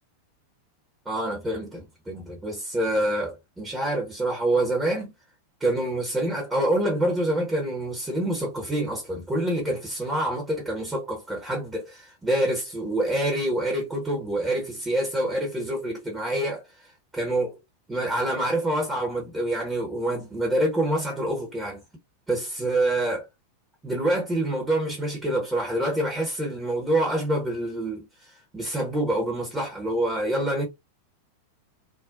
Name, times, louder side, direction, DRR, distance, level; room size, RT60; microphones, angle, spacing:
voice 1, 1.1-5.1 5.6-16.6 17.1-17.6 17.9-21.8 22.3-23.3 23.8-30.6, right 1 dB, 10° right, 0.9 m, -26 dB
2.4 x 2.0 x 2.5 m
figure-of-eight pair, 90°, 0 cm